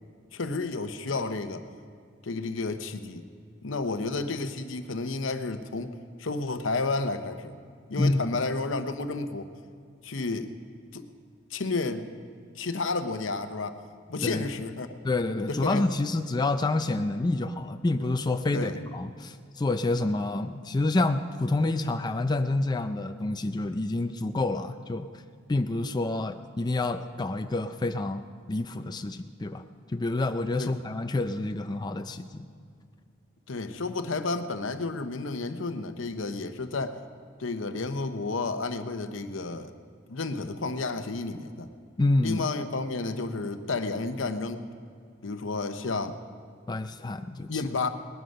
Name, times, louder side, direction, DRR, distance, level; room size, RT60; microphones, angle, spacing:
voice 1, 0.3-1.6 2.2-3.2 3.6-5.9 6.2-7.6 7.9-9.5 10.0-10.5 10.9-11.0 11.5-12.1 12.6-13.8 14.1-14.9 15.5-15.8 18.5-18.8 30.6-30.7 33.5-37.0 37.4-39.7 40.1-41.7 42.2-44.6 45.2-46.2 47.5-47.9, left 3 dB, 70° left, 9 dB, 0.9 m, -31 dB
voice 2, 8.0-8.4 14.2-14.5 15.0-25.2 25.5-28.2 28.5-32.5 42.0-42.4 46.7-47.6, left 2 dB, 20° left, 7 dB, 0.4 m, -28 dB
19.5 x 11.5 x 5.3 m, 2.2 s
head